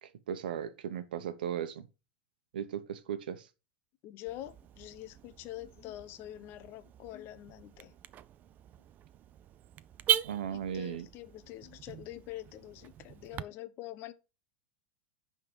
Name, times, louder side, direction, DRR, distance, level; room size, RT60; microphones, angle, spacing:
voice 1, 0.0-1.9 2.5-3.5 10.2-11.1, right 9 dB, 80° right, 0.9 m, -37 dB
voice 2, 4.0-7.9 10.5-14.1, left 14 dB, 50° left, 0.9 m, -45 dB
Car / Alarm, 4.3-13.4, right 10 dB, 35° right, 0.4 m, -39 dB
10.5 x 3.8 x 4.6 m
hypercardioid pair, 105°, 5 cm